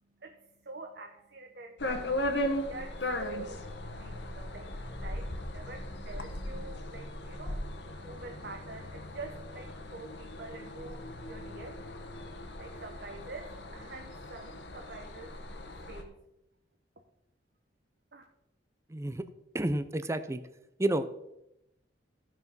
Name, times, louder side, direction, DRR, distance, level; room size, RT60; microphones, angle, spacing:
voice 1, 0.6-2.3 2.6-7.6 7.9-11.8 12.6-15.4 15.9-16.2 18.1-18.2, right 3 dB, 60° right, 3 dB, 1.0 m, -46 dB
sound 1, 1.8-16.0, left 1 dB, 70° left, 1.3 m, -38 dB
voice 2, 18.9-19.2 19.5-20.4 20.8-21.1, right 1 dB, 15° right, 11 dB, 0.6 m, -30 dB
14.5 x 6.0 x 5.4 m, 0.85 s
head